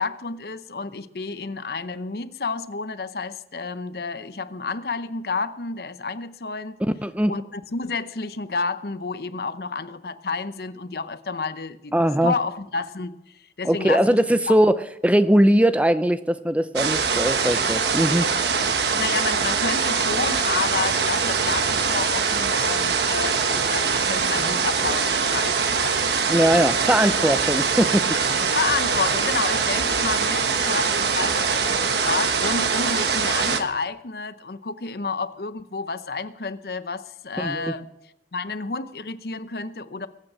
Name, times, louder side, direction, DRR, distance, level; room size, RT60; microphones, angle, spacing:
voice 1, 0.0-6.8 7.3-11.9 12.2-13.1 13.6-14.1 14.5-14.7 18.8-26.2 26.8-26.9 28.4-37.9 38.3-40.1, left 4 dB, 60° left, 13 dB, 0.7 m, -30 dB
voice 2, 6.8-7.4 11.9-12.3 13.6-18.3 26.3-28.5 37.4-37.7, right 1 dB, 10° right, 11 dB, 0.4 m, -20 dB
sound 1, 16.8-33.6, right 5 dB, 70° right, 1.3 m, -23 dB
21.5 x 8.9 x 6.2 m, 0.89 s
head